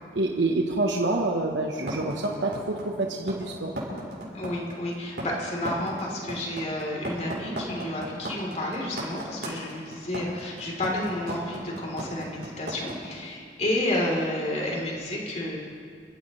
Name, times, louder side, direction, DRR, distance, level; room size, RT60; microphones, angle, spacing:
voice 1, 0.1-2.5 3.0-3.7, right 2 dB, 85° right, 0 dB, 1.2 m, -26 dB
sound 1, 1.9-12.9, right 1 dB, 65° right, 5.6 m, -35 dB
voice 2, 4.3-15.6, left 1 dB, 40° left, -2 dB, 3.7 m, -31 dB
28.0 x 15.5 x 3.3 m, 2.3 s
head